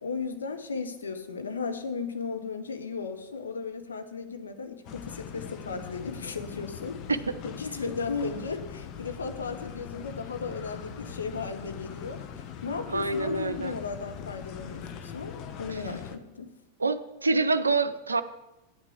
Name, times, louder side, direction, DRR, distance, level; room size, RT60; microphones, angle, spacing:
voice 1, 0.0-7.0 7.4-12.2 12.6-15.3 15.6-16.5, left 4 dB, 70° left, 6 dB, 1.0 m, -35 dB
sound 1, 4.8-16.2, left 8 dB, 40° left, 0.8 m, -41 dB
voice 2, 12.9-13.8 15.7-15.8 16.8-18.2, right 3 dB, 75° right, 10 dB, 0.5 m, -26 dB
9.3 x 6.0 x 7.6 m, 0.98 s
figure-of-eight pair, 90°, 0 cm